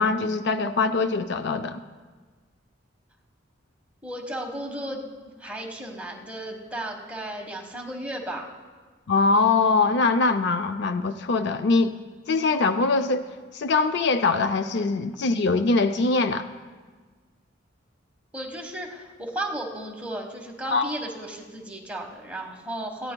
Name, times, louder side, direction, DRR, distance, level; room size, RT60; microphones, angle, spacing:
voice 1, 0.0-1.8 9.1-11.9 12.3-16.5 20.7-20.9, left 3 dB, 60° left, 9 dB, 0.5 m, -23 dB
voice 2, 4.0-8.5 18.3-23.1, right 1 dB, 5° right, 1 dB, 1.3 m, -34 dB
18.5 x 15.0 x 2.3 m, 1.4 s
head